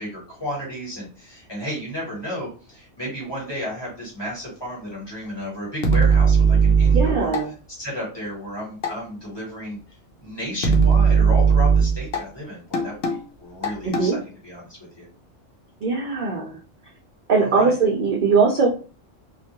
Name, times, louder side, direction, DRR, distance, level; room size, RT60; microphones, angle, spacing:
voice 1, 0.0-7.3 7.7-15.1 17.4-17.7, equal, 20° left, -5 dB, 1.0 m, -33 dB
sound 1, 5.8-7.4 8.8-8.9 10.6-12.2 12.7-13.2 13.6-14.1, right 5 dB, 60° left, 0.7 m, -17 dB
voice 2, 6.9-7.5 13.8-14.2 15.8-16.6 17.3-18.7, right 4 dB, 65° right, 0 dB, 0.5 m, -20 dB
2.2 x 2.2 x 2.8 m, 0.38 s
omnidirectional pair, 1.3 m